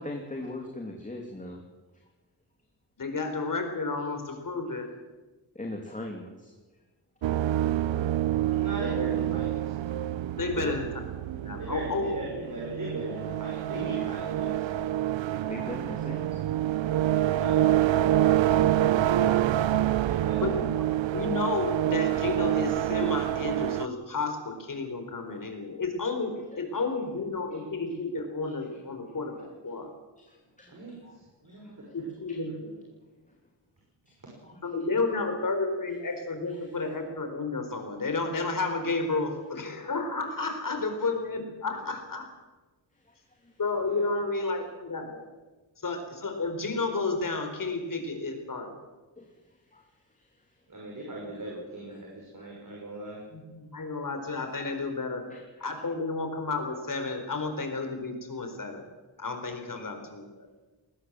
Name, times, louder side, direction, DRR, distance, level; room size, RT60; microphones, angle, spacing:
voice 1, 0.0-1.6 5.5-6.5 10.5-10.8 13.9-14.0 15.5-16.4 18.7-19.5 25.7-25.8 26.5-26.8 28.4-28.5 30.2-31.2 31.4-31.9 32.3-32.4 34.1-34.2 34.4-34.6 43.0-43.5 49.2-49.4 49.7-49.9 50.1-50.3 52.4-52.5 55.3-55.4, left 1 dB, 15° left, 1 dB, 3.0 m, -41 dB
voice 2, 3.0-4.9 10.4-11.0 11.3-12.2 13.6-13.8 16.1-16.2 20.4-20.9 21.1-29.9 31.9-32.7 34.6-42.3 43.6-45.2 45.8-48.8 53.3-55.3 55.6-58.9 59.2-60.5, left 3 dB, 45° left, 6 dB, 4.5 m, -32 dB
sound 1, 7.2-23.9, right 12 dB, 85° right, 0.7 m, -27 dB
voice 3, 8.5-9.7 11.6-14.9 17.3-17.6 20.0-20.5 30.7-32.5 34.2-34.3 41.7-41.8 43.8-44.0 50.7-53.2, right 2 dB, 45° right, -2 dB, 6.0 m, -39 dB
21.0 x 19.0 x 7.6 m, 1.2 s
wide cardioid pair, 110°, 44 cm